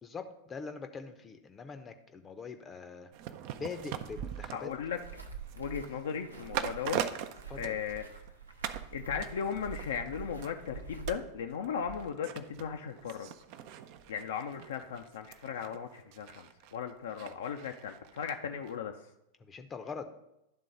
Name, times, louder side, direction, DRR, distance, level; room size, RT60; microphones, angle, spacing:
voice 1, 0.0-3.1 3.6-4.7 7.5-7.8 19.4-20.1, left 5 dB, 20° left, 8 dB, 0.6 m, -43 dB
sound 1, 3.1-8.3 8.6-8.9 9.2-18.3 18.7-18.8, right 9 dB, 45° right, 0.5 m, -42 dB
voice 2, 4.5-5.0 5.6-7.0 7.6-8.0 8.9-13.3 14.1-18.9, left 7 dB, 60° left, 4 dB, 0.5 m, -37 dB
sound 2, 4.9-11.1, right 6 dB, 80° right, 0.8 m, -47 dB
11.0 x 3.7 x 5.1 m, 0.85 s
figure-of-eight pair, 90°, 0 cm